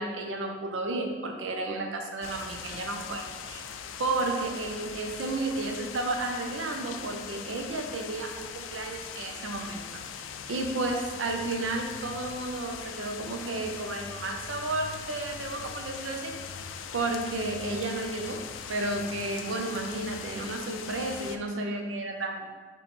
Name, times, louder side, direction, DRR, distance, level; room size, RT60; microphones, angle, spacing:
voice 1, 0.0-3.6 4.0-16.4 16.9-22.5, right 2 dB, 90° right, 3 dB, 0.6 m, -32 dB
sound 1, 2.2-21.4, left 7 dB, 85° left, 0.3 m, -41 dB
5.0 x 3.0 x 3.2 m, 1.4 s
head